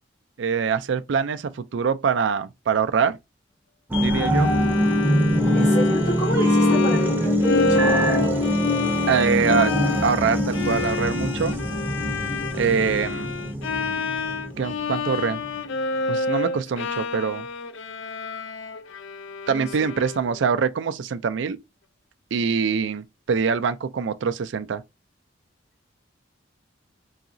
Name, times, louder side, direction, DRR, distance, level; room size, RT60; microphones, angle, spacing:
voice 1, 0.4-3.2 4.0-4.5 9.1-9.7 10.0-11.5 12.5-13.3 14.6-15.4 16.1-17.5 19.5-21.6 22.3-24.8, right 6 dB, 70° right, 0.4 m, -24 dB
sound 1, 3.9-14.9 15.4-15.5, left 1 dB, 10° right, 0.6 m, -23 dB
Bowed string instrument, 4.3-20.4, left 3 dB, 80° left, 0.5 m, -29 dB
voice 2, 5.5-7.9 19.5-19.8, equal, 55° left, 1.2 m, -30 dB
4.7 x 2.9 x 2.6 m
head